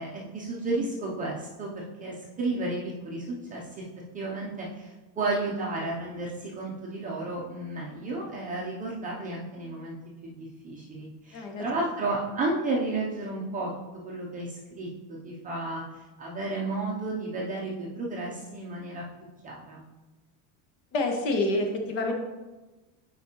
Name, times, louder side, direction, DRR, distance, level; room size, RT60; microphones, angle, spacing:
voice 1, 0.0-3.8 4.1-10.0 10.2-13.7 14.0-15.8 16.2-19.0 19.4-19.8, right 2 dB, 20° right, -4 dB, 0.4 m, -32 dB
voice 2, 11.3-11.6 20.9-22.1, left 2 dB, 70° left, 3 dB, 1.3 m, -27 dB
9.5 x 4.4 x 2.8 m, 1.2 s
cardioid pair, 170°, 47 cm